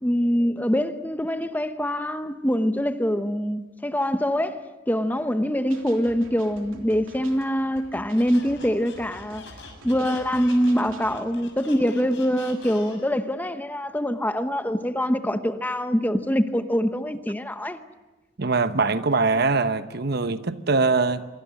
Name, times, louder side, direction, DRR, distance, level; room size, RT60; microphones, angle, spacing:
voice 1, 0.0-4.6 4.9-9.4 9.8-17.8, equal, 10° left, 1.0 m, -24 dB
sound 1, 5.7-11.2, right 2 dB, 80° right, 3.4 m, -47 dB
Squeak, 8.1-13.2, left 4 dB, 65° left, 6.7 m, -45 dB
voice 2, 18.4-21.3, right 3 dB, 55° right, 1.0 m, -22 dB
25.5 x 23.5 x 7.8 m
head